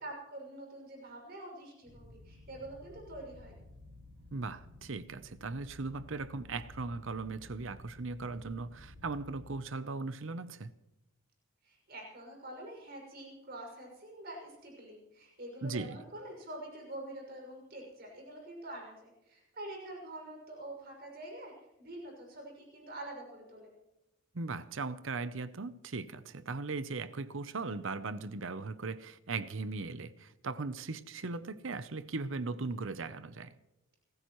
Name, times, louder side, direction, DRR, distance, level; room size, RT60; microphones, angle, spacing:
voice 1, 0.0-3.5 11.6-21.5 21.8-23.7, right 1 dB, 45° right, 6.3 m, -46 dB
sound 1, 1.8-9.6, left 1 dB, 85° right, 5.1 m, -54 dB
voice 2, 4.3-10.7 15.6-16.0 24.3-33.5, right 3 dB, 65° right, 0.7 m, -38 dB
28.5 x 14.5 x 3.1 m
head